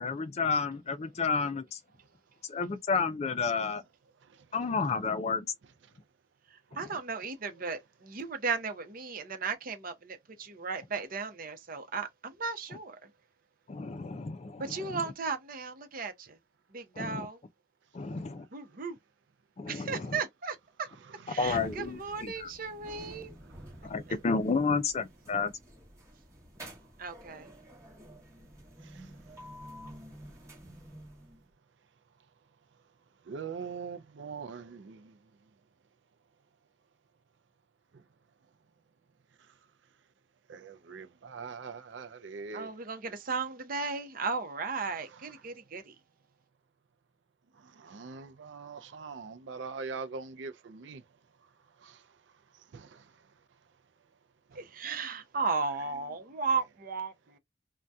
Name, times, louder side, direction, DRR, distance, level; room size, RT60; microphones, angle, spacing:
voice 1, 0.0-1.8 2.5-3.8 4.5-5.5 6.7-6.9 13.7-15.0 16.9-17.3 17.9-18.5 19.6-20.2 21.4-22.5 23.8-25.5, left 4 dB, 35° left, 0.4 m, -31 dB
voice 2, 6.5-13.1 14.6-16.4 16.7-17.4 18.5-19.0 19.7-20.9 21.3-23.3 27.0-27.5 42.5-45.9 54.5-57.4, right 4 dB, 50° right, 0.7 m, -35 dB
voice 3, 21.1-21.4 23.4-23.9 28.8-29.1 33.2-35.2 37.9-38.0 39.4-39.5 40.5-42.7 45.0-45.3 47.5-51.0 51.8-52.2 52.5-53.3 54.5-55.0, right 5 dB, 85° right, 0.5 m, -43 dB
sound 1, 21.3-31.5, equal, 15° right, 1.1 m, -50 dB
2.7 x 2.2 x 3.4 m
head